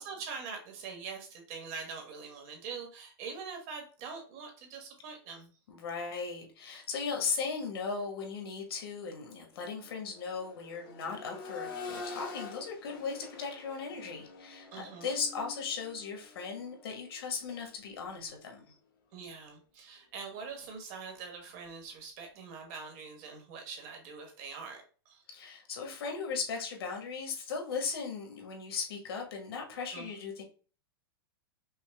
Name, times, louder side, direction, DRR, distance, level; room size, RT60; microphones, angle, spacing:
voice 1, 0.0-5.5 14.7-15.2 19.1-25.2 29.9-30.1, right 5 dB, 35° right, 3 dB, 1.3 m, -44 dB
voice 2, 5.7-18.6 25.3-30.4, left 5 dB, 80° left, 2 dB, 1.6 m, -37 dB
Accelerating revving vroom, 8.1-8.3 8.7-18.6 20.3-20.4, left 4 dB, 60° left, 2.1 m, -47 dB
5.6 x 2.2 x 3.4 m, 0.38 s
supercardioid pair, 165°, 13 cm